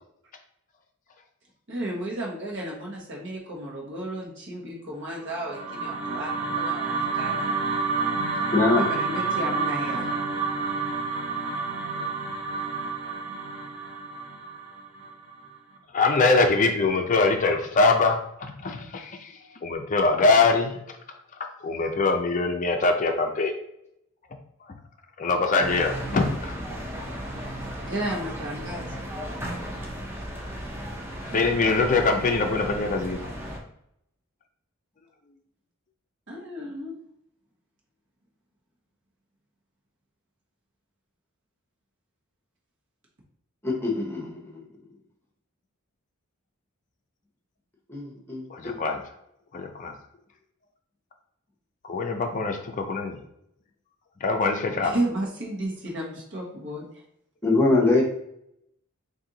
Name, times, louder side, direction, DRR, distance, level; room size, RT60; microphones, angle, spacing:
voice 1, 1.7-7.5 8.8-10.1 27.8-29.1 36.3-36.9 54.8-56.9, right 1 dB, 60° right, -2 dB, 1.2 m, -33 dB
sound 1, 5.2-15.5, right 4 dB, 75° right, 0.9 m, -29 dB
voice 2, 8.5-8.9 43.6-44.4 47.9-48.8 57.4-58.0, left 2 dB, 10° left, -2 dB, 0.9 m, -23 dB
voice 3, 15.9-19.3 19.6-20.8 21.6-23.5 25.2-26.5 31.3-33.2 48.5-49.0 49.5-49.9 51.9-53.2 54.2-55.0, left 3 dB, 35° left, 4 dB, 0.4 m, -23 dB
sound 2, 25.6-33.6, equal, 10° right, 0.6 m, -35 dB
4.2 x 2.7 x 3.8 m, 0.76 s
head